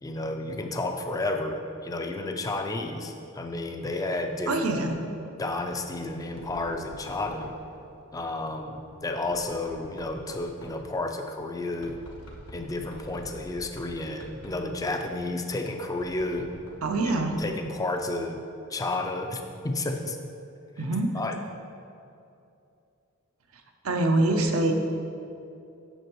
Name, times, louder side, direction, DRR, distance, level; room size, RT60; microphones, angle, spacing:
voice 1, 0.0-4.8 5.4-7.5 8.1-12.0 12.5-16.5 17.4-18.4 18.7-20.2 21.1-21.4, left 2 dB, 15° left, 4 dB, 0.4 m, -31 dB
voice 2, 4.5-4.9 16.8-17.4 20.8-21.1 23.8-24.7, right 2 dB, 75° right, 5 dB, 0.6 m, -24 dB
Knock, 5.4-17.6, equal, 85° left, 1.0 m, -47 dB
7.9 x 6.0 x 3.0 m, 2.6 s
head